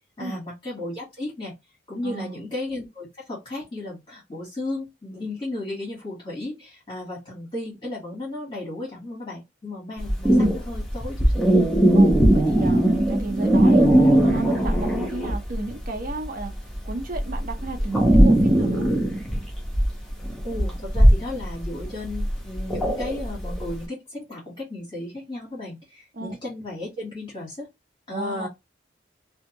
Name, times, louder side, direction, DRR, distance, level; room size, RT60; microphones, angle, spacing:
voice 1, 0.2-1.5 1.9-11.4 20.4-27.7 28.1-28.5, left 2 dB, 25° left, 1.4 m, -34 dB
voice 2, 2.0-2.5 11.9-16.5 16.9-18.9 26.1-26.4 28.1-28.5, right 2 dB, 50° right, 0.6 m, -33 dB
sound 1, 10.0-15.6 15.8-23.7, right 1 dB, ahead, 0.7 m, -19 dB
2.6 x 2.3 x 2.9 m
head